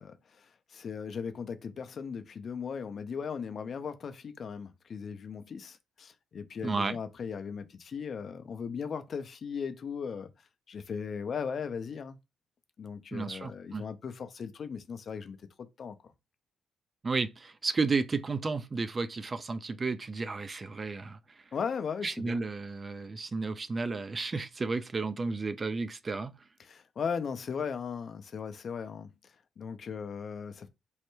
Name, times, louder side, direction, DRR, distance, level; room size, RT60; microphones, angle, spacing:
voice 1, 0.0-10.3 10.7-12.2 12.8-16.0 21.5-22.4 26.6-30.7, left 6 dB, 55° left, 0.4 m, -38 dB
voice 2, 6.6-7.0 13.1-13.8 17.0-21.2 22.0-26.3, right 4 dB, 35° right, 0.3 m, -32 dB
3.1 x 2.1 x 3.0 m
cardioid pair, 75°, 0 cm